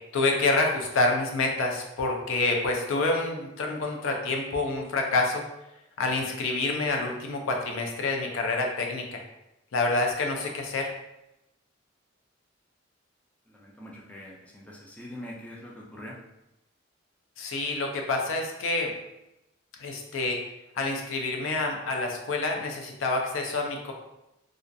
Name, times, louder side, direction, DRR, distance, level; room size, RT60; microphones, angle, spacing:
voice 1, 0.1-5.4 6.0-9.2 9.7-10.9 17.4-18.9 19.8-20.4 20.8-23.9, left 2 dB, 80° left, 1 dB, 0.4 m, -27 dB
voice 2, 13.5-16.2, left 1 dB, 5° left, -3 dB, 0.3 m, -43 dB
2.4 x 2.2 x 2.5 m, 0.91 s
head